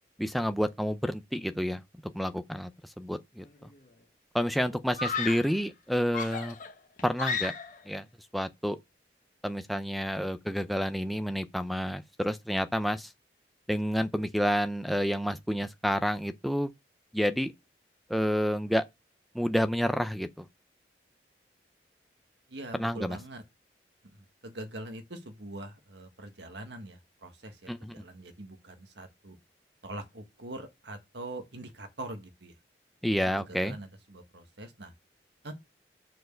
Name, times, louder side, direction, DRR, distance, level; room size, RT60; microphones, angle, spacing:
voice 1, 0.2-1.8 2.1-2.7 3.0-3.7 4.3-6.6 7.0-7.5 7.9-8.0 8.3-8.8 9.4-13.1 13.7-16.7 17.1-17.5 18.1-18.8 19.3-20.4 22.7-23.2 27.7-28.0 33.0-33.8, equal, ahead, 0.5 m, -29 dB
Screaming, 3.4-3.9 4.9-5.6 6.1-7.9, left 5 dB, 45° left, 1.0 m, -34 dB
voice 2, 22.5-23.4 24.1-29.4 29.8-32.5 33.2-34.9 35.4-35.5, right 1 dB, 80° right, 1.6 m, -43 dB
6.3 x 4.7 x 6.7 m
head